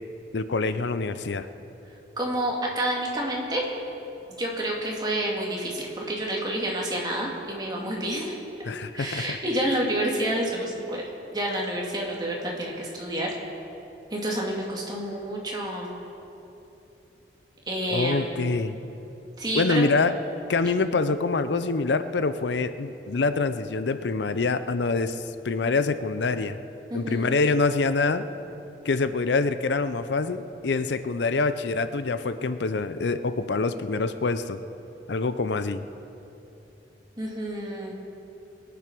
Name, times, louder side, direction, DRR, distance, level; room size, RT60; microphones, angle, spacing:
voice 1, 0.3-1.5 8.7-9.4 17.9-18.8 19.6-20.1 20.5-26.6 26.9-28.3 28.8-34.6 35.1-35.9, left 3 dB, 80° left, 12 dB, 0.6 m, -25 dB
voice 2, 2.2-3.6 4.4-11.0 11.3-13.3 14.1-15.9 17.7-18.4 19.4-19.9 26.9-27.3 37.2-37.9, right 1 dB, 25° right, -2 dB, 2.2 m, -29 dB
22.0 x 9.4 x 6.0 m, 3.0 s
head